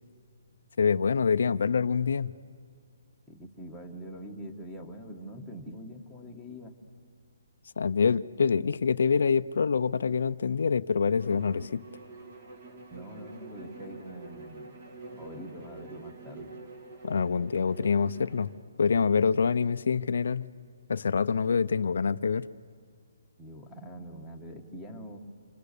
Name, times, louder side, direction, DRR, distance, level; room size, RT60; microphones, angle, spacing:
voice 1, 0.8-2.3 7.8-11.8 17.0-18.5 18.8-20.5 20.9-22.5, left 5 dB, 65° left, 14 dB, 0.6 m, -26 dB
voice 2, 3.3-6.7 12.9-14.8 15.2-16.6 23.4-25.2, equal, ahead, -5 dB, 1.5 m, -44 dB
Bowed string instrument, 11.2-18.6, right 3 dB, 40° right, 2.7 m, -46 dB
27.0 x 26.0 x 6.8 m, 2.1 s
hypercardioid pair, 170°, 0 cm